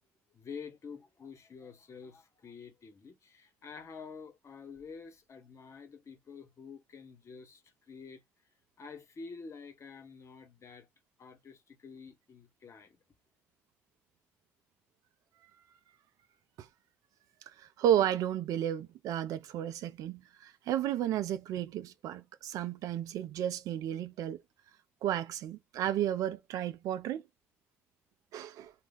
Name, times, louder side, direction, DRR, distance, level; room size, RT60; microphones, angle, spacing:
voice 1, 0.3-8.2 8.8-10.9 11.2-13.0, left 5 dB, 50° left, 1.0 m, -48 dB
voice 2, 17.5-24.4 25.0-27.2 28.3-28.7, right 11 dB, 75° right, 0.4 m, -33 dB
2.4 x 2.2 x 3.9 m
hypercardioid pair, 45°, 6 cm